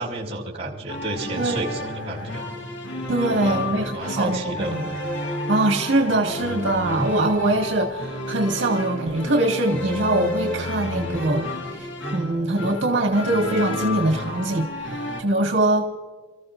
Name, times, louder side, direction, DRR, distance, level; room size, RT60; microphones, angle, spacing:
voice 1, 0.0-2.7 3.2-4.8, right 2 dB, 35° right, -3 dB, 4.1 m, -32 dB
sound 1, 0.9-15.2, left 1 dB, 85° left, 1.9 m, -31 dB
voice 2, 3.1-4.8 5.5-15.8, right 2 dB, 85° right, 2 dB, 1.9 m, -23 dB
29.5 x 14.5 x 2.6 m, 1.4 s
head